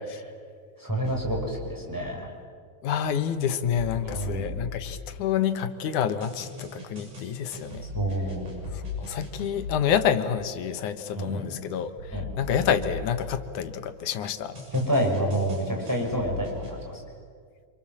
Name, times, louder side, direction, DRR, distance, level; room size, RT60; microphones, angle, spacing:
voice 1, 0.8-2.3 4.0-4.6 7.9-8.5 11.1-11.6 12.1-12.2 14.7-17.0, right 1 dB, 5° right, 0 dB, 5.6 m, -28 dB
sound 1, 1.0-1.6 3.6-5.5 6.2-9.9 12.0-13.8 14.5-16.8, left 3 dB, 80° right, 8.4 m, -38 dB
voice 2, 2.8-7.9 8.7-14.6, left 8 dB, 75° left, 9 dB, 2.6 m, -28 dB
27.5 x 27.5 x 7.5 m, 2.1 s
omnidirectional pair, 3.7 m